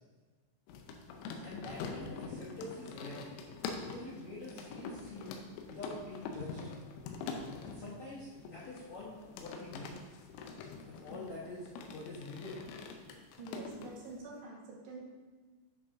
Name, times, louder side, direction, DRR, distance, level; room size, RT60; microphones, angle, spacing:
sound 1, 0.7-14.2, left 5 dB, 90° left, 3.0 m, -45 dB
voice 1, 1.4-3.3 3.9-5.4 5.7-6.6 7.6-10.0 10.9-12.6, left 2 dB, 70° left, -7 dB, 1.7 m, -46 dB
voice 2, 13.4-15.0, right 3 dB, 75° right, -4 dB, 3.5 m, -46 dB
10.0 x 6.2 x 2.7 m, 1.4 s
omnidirectional pair, 5.1 m